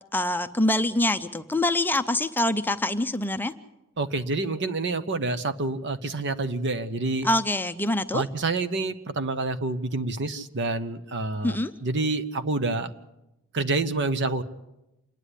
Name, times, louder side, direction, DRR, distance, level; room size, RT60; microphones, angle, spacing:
voice 1, 0.1-3.5 7.2-8.2 11.4-11.7, left 1 dB, 10° left, 9 dB, 0.6 m, -25 dB
voice 2, 4.0-7.3 8.1-11.6 11.8-12.9 13.5-14.4, right 3 dB, 55° right, 11 dB, 1.0 m, -27 dB
27.5 x 10.0 x 10.0 m, 0.93 s
head